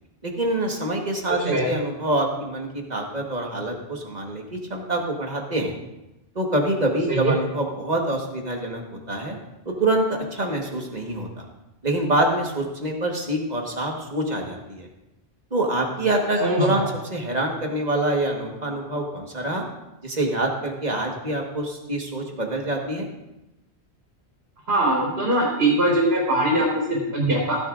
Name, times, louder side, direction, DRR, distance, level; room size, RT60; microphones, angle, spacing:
voice 1, 0.2-5.8 6.3-8.8 9.1-9.4 9.6-11.4 11.8-14.9 15.5-19.6 20.0-23.1, right 1 dB, 40° right, 1 dB, 1.6 m, -26 dB
voice 2, 16.4-16.8 24.7-27.6, right 1 dB, 65° right, -4 dB, 3.9 m, -21 dB
16.0 x 10.5 x 2.6 m, 0.93 s
omnidirectional pair, 1.1 m